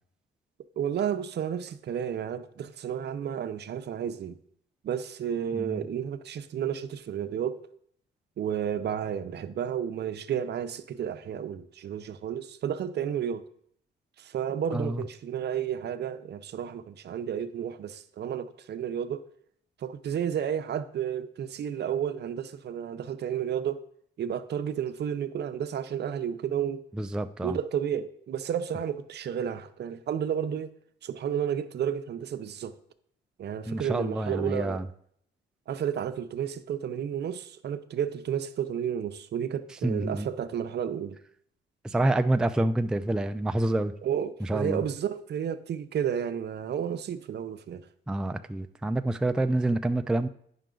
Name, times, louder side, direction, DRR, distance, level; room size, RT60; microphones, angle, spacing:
voice 1, 0.8-4.4 4.8-7.6 8.4-13.4 14.2-19.2 19.8-23.8 24.2-26.8 27.4-30.7 31.0-32.7 33.4-34.8 35.7-41.2 44.0-47.9, right 9 dB, 55° right, 0.6 m, -32 dB
voice 2, 5.5-5.9 14.7-15.0 27.0-27.6 33.7-34.9 39.8-40.3 41.8-43.9 44.4-44.8 48.1-50.3, right 1 dB, 5° right, 0.3 m, -27 dB
9.1 x 5.8 x 3.8 m
cardioid pair, 90°, 20 cm